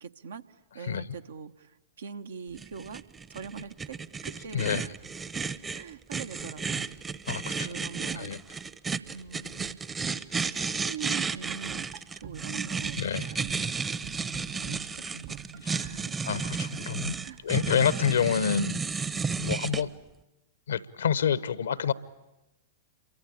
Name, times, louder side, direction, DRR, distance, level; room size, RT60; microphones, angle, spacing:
voice 1, 0.0-0.4 0.7-3.0 3.3-4.9 5.7-6.9 7.3-8.6 9.1-10.1 10.5-13.6 14.5-16.4 16.7-16.9 17.2-17.4, right 7 dB, 70° right, 1.1 m, -43 dB
voice 2, 0.8-1.1 4.5-4.8 7.3-7.7 8.1-8.4 13.0-13.4 15.6-15.7 16.2-17.2 17.4-18.8 19.4-19.9 20.7-21.9, left 7 dB, 70° left, 1.0 m, -28 dB
sound 1, 2.6-19.8, right 5 dB, 20° right, 0.9 m, -33 dB
sound 2, 11.7-17.8, right 12 dB, 50° right, 1.2 m, -47 dB
28.0 x 23.5 x 8.8 m
figure-of-eight pair, 100°, 0 cm